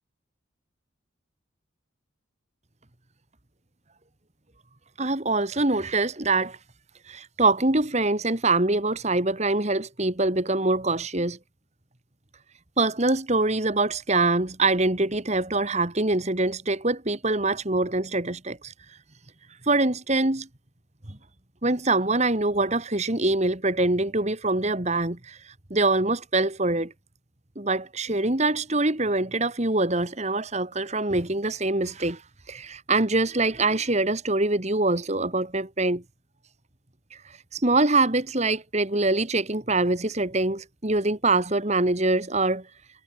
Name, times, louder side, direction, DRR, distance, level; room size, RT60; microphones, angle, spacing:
voice 1, 5.0-6.6 7.1-11.4 12.8-18.7 19.7-20.5 21.1-21.2 21.6-25.4 25.7-26.9 27.6-32.2 32.5-36.0 37.1-37.2 37.5-42.7, right 2 dB, 35° right, 2.0 m, -24 dB
head